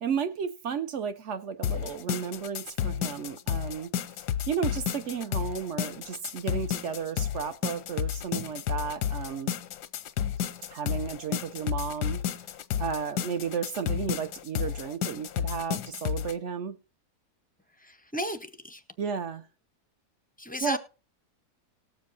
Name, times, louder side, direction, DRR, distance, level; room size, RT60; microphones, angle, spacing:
voice 1, 0.0-3.9 4.5-9.5 10.7-12.2 12.8-16.8 19.0-19.5 20.6-20.8, right 7 dB, 60° right, 0.8 m, -33 dB
sound 1, 1.6-16.3, left 9 dB, 85° left, 1.3 m, -31 dB
voice 2, 17.8-18.8 20.4-20.8, left 1 dB, 10° left, 0.4 m, -34 dB
19.0 x 7.5 x 2.7 m
omnidirectional pair, 1.7 m